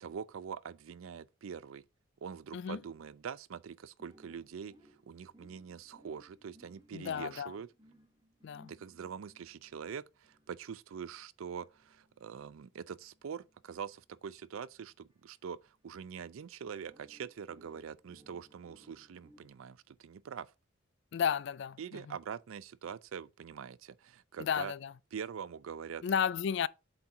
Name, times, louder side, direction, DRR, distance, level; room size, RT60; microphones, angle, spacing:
voice 1, 0.0-1.8 2.2-4.7 5.1-7.7 8.7-20.5 21.8-24.7 25.1-26.0, right 7 dB, 80° right, 0.4 m, -44 dB
sound 1, 4.0-16.1 16.9-19.5, right 1 dB, 20° right, 1.3 m, -64 dB
voice 2, 6.9-7.5 8.4-8.7 21.1-22.2 24.4-24.9 26.0-26.7, left 7 dB, 60° left, 0.3 m, -33 dB
7.9 x 4.4 x 3.6 m
head